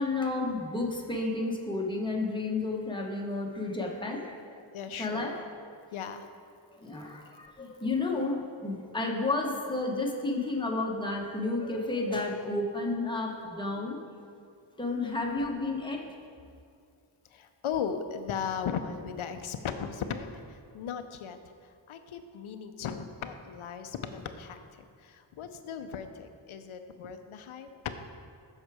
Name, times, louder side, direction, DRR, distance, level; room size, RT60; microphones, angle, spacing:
voice 1, 0.0-4.3 5.0-5.5 6.8-14.0 14.8-16.0, left 2 dB, 10° left, 0 dB, 0.9 m, -31 dB
voice 2, 4.7-5.4 5.9-6.3 17.3-27.7, left 7 dB, 90° left, 8 dB, 0.6 m, -37 dB
8.0 x 5.8 x 4.8 m, 2.3 s
wide cardioid pair, 105°, 47 cm